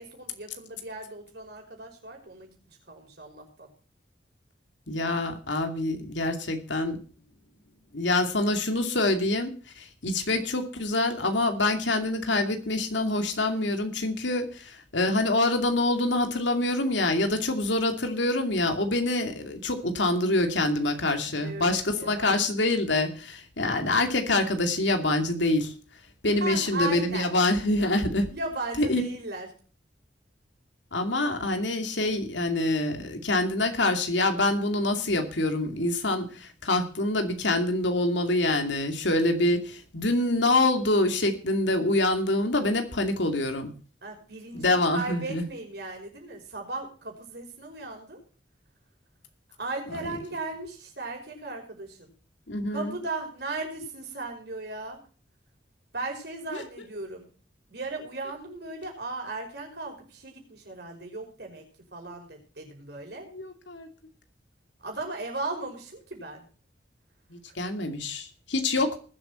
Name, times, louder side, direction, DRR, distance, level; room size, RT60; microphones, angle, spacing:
voice 1, 0.0-2.5 2.9-3.7 21.4-22.4 26.4-27.3 28.3-29.5 44.0-48.2 49.6-52.1 52.7-55.0 55.9-57.3 57.7-61.6 61.9-63.3 64.8-66.5 67.5-67.7, right 2 dB, 60° right, 2 dB, 5.6 m, -37 dB
voice 2, 4.9-7.0 7.9-25.7 26.2-28.3 28.8-29.0 30.9-43.7 44.5-45.4 52.5-52.9 56.5-56.6 63.3-63.9 67.3-69.0, left 2 dB, 80° left, 6 dB, 2.5 m, -26 dB
20.0 x 8.2 x 4.4 m, 0.39 s
head